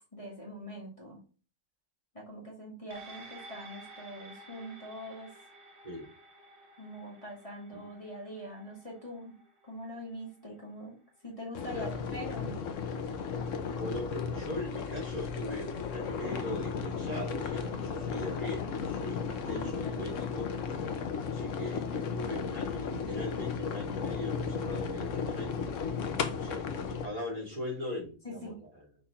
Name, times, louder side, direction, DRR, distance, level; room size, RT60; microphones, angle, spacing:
voice 1, 0.1-1.2 2.1-5.3 6.8-9.3 9.7-11.0 11.2-12.7 19.4-20.0 28.2-28.6, equal, 25° left, -4 dB, 2.4 m, -43 dB
sound 1, 2.9-11.6 12.0-12.1, right 2 dB, 60° right, 1.7 m, -53 dB
sound 2, 11.5-27.1, left 6 dB, 85° left, 1.2 m, -35 dB
voice 2, 13.8-20.5 21.3-25.7 26.3-28.8, left 1 dB, 30° right, -6 dB, 2.6 m, -40 dB
6.5 x 4.2 x 3.8 m, 0.37 s
omnidirectional pair, 1.3 m